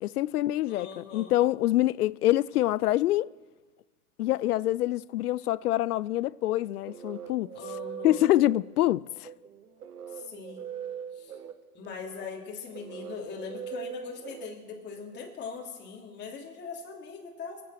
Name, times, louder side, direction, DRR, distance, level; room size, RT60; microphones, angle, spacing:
voice 1, 0.0-3.3 4.2-7.5 8.0-9.3, left 15 dB, 75° left, 0.5 m, -26 dB
voice 2, 0.7-1.4 7.5-8.3 10.1-10.6 11.1-11.4 11.7-17.6, left 5 dB, 25° left, 2.8 m, -41 dB
sound 1, 6.5-15.2, right 8 dB, 85° right, 1.3 m, -42 dB
23.5 x 8.7 x 6.5 m
hypercardioid pair, 120°, 46 cm